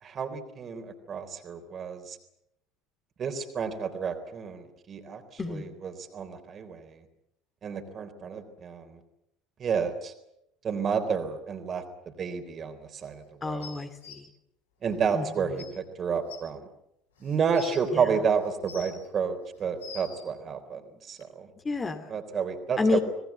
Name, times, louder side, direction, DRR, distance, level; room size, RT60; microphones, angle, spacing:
voice 1, 0.0-2.2 3.2-7.0 7.6-9.0 9.6-10.1 10.6-11.8 12.2-13.7 14.8-16.7 17.2-21.5 22.1-23.0, right 6 dB, 35° right, 7 dB, 3.7 m, -30 dB
voice 2, 5.4-5.7 13.4-14.3 15.1-15.6 17.9-18.2 21.6-22.1 22.8-23.0, left 3 dB, 25° left, 7 dB, 2.7 m, -30 dB
sound 1, 13.6-14.2 15.2-15.3 15.6-15.7 16.3-16.4 17.2-17.8 18.4-19.1 19.6-20.2 21.2-21.3, left 6 dB, 70° left, 4.2 m, -44 dB
26.0 x 20.0 x 8.4 m, 0.81 s
figure-of-eight pair, 65°, 0 cm